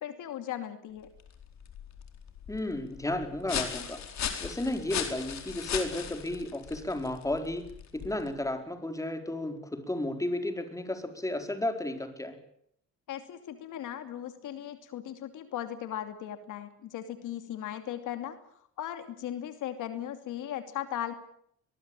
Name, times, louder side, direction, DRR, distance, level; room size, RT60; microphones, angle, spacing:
voice 1, 0.0-1.1 13.1-18.4 18.8-21.1, left 11 dB, 80° left, 9 dB, 2.8 m, -37 dB
sound 1, 1.0-8.5, left 8 dB, 65° left, 4.6 m, -38 dB
voice 2, 2.5-4.0 4.4-12.4, left 1 dB, 10° left, 6 dB, 4.5 m, -33 dB
23.0 x 20.5 x 9.0 m, 0.69 s
cardioid pair, 90°, 30 cm